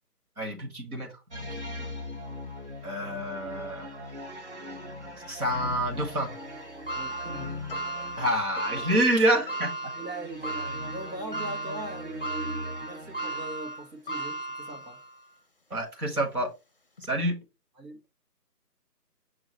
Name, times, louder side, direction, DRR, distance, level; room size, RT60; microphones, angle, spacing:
voice 1, 0.4-1.1 2.8-3.9 5.3-6.3 8.2-9.7 15.7-16.5 17.1-17.4, right 1 dB, 65° right, 1.9 m, -27 dB
sound 1, 1.3-13.8, left 1 dB, 45° right, 0.9 m, -40 dB
sound 2, 6.9-15.2 15.7-15.8 17.0-17.1, right 1 dB, 35° left, 0.6 m, -36 dB
voice 2, 6.9-7.6 10.0-15.0 17.8-18.0, right 1 dB, 90° right, 1.6 m, -41 dB
6.1 x 2.7 x 3.0 m
figure-of-eight pair, 165°, 48 cm